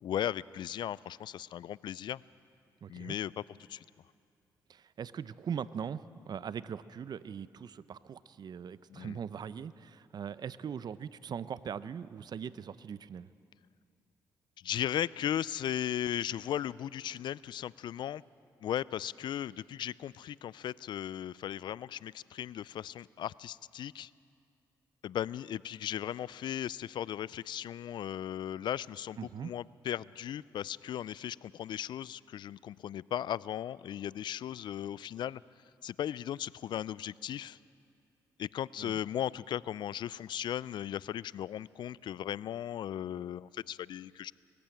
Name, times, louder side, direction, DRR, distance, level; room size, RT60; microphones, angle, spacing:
voice 1, 0.0-2.2 2.9-3.3 3.7-3.8 8.9-9.2 14.6-18.2 18.6-24.1 25.0-35.4 35.8-37.6 38.4-44.3, left 10 dB, 65° left, 21 dB, 0.4 m, -37 dB
voice 2, 2.8-3.2 4.7-13.3 29.2-29.5 38.8-39.0, right 7 dB, 55° right, 16 dB, 0.7 m, -41 dB
20.0 x 15.0 x 8.8 m, 2.4 s
supercardioid pair, 55°, 8 cm